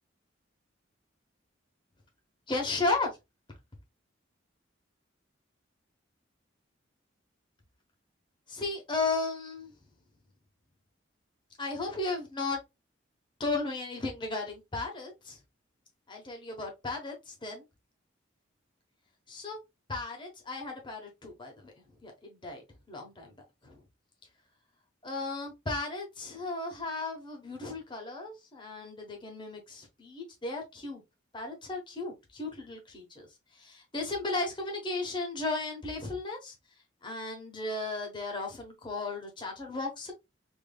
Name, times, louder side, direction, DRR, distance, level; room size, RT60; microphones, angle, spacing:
voice 1, 2.5-3.2 8.5-9.7 11.6-12.6 13.4-15.4 16.1-17.6 19.3-19.6 19.9-21.7 22.0-23.3 23.6-23.8 25.0-31.0 31.3-33.3 33.5-36.5 37.0-40.1, left 3 dB, 25° left, 1.0 m, -35 dB
3.4 x 2.9 x 2.3 m
head